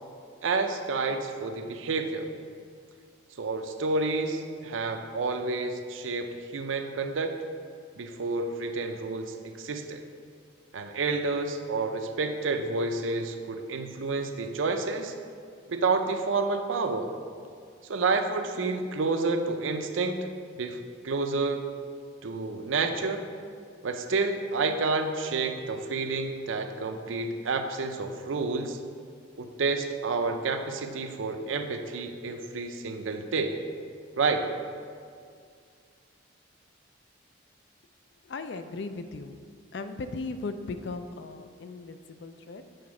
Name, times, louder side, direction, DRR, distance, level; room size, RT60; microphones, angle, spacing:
voice 1, 0.4-2.3 3.4-7.3 8.0-10.0 10.7-15.1 15.7-17.1 17.8-20.3 20.6-20.8 21.0-21.7 22.2-23.2 23.8-28.8 29.4-33.6 34.2-34.5, right 3 dB, 80° right, 6 dB, 0.5 m, -29 dB
voice 2, 38.2-39.4 39.7-42.8, left 3 dB, 60° left, 9 dB, 0.4 m, -37 dB
7.8 x 4.2 x 4.8 m, 2.2 s
head